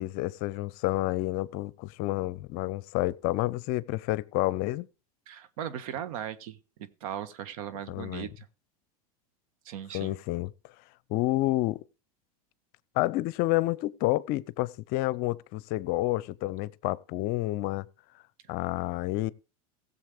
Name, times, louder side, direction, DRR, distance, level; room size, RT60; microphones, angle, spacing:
voice 1, 0.0-4.9 7.9-8.3 9.9-10.5 11.1-11.9 12.9-17.9 18.5-19.3, left 18 dB, 50° left, 0.7 m, -29 dB
voice 2, 5.3-6.6 7.0-8.5 9.6-10.2 18.5-18.6, right 9 dB, 65° right, 1.4 m, -38 dB
16.5 x 7.3 x 4.9 m
hypercardioid pair, 105°, 19 cm